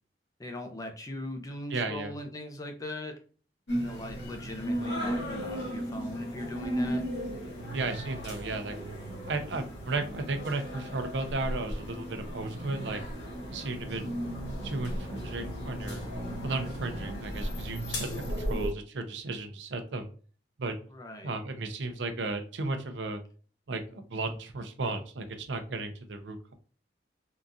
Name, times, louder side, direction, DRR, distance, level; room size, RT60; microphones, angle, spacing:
voice 1, 0.4-3.2 3.8-7.0 20.9-21.3, left 1 dB, 20° left, 3 dB, 0.5 m, -40 dB
voice 2, 1.7-2.1 7.7-8.8 9.3-13.0 13.5-14.0 14.6-16.0 16.4-20.1 20.6-20.8 21.2-23.2 23.7-26.5, right 3 dB, 85° right, 7 dB, 0.6 m, -34 dB
sound 1, 3.7-18.7, equal, 80° left, 1.3 m, -35 dB
3.8 x 2.4 x 2.6 m, 0.40 s
head